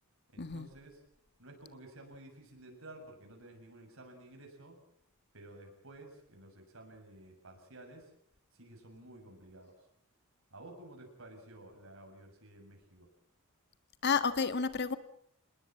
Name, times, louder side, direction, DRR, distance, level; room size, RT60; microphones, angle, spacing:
voice 1, 0.3-1.0 1.4-4.8 5.3-8.1 8.5-9.9 10.5-13.1, right 1 dB, 65° right, 2 dB, 7.0 m, -53 dB
voice 2, 14.0-15.0, left 5 dB, 50° left, 11 dB, 1.7 m, -30 dB
28.0 x 20.5 x 7.4 m, 0.66 s
head